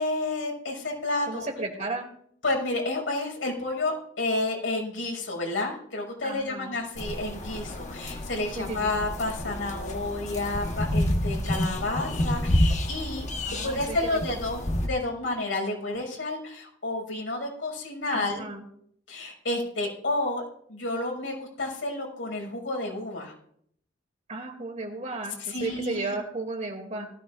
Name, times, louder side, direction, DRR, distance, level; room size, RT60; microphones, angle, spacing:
voice 1, 0.0-1.5 2.4-13.3 13.6-18.4 19.1-20.4 20.7-23.3 25.4-26.1, left 2 dB, 85° left, 0 dB, 5.9 m, -30 dB
voice 2, 1.3-2.1 6.2-6.7 8.6-8.9 13.4-14.4 18.1-18.6 24.3-27.1, right 3 dB, 40° right, 2 dB, 2.6 m, -34 dB
sound 1, 7.0-14.9, left 1 dB, 40° left, 1.3 m, -29 dB
18.5 x 15.0 x 2.5 m, 0.66 s
head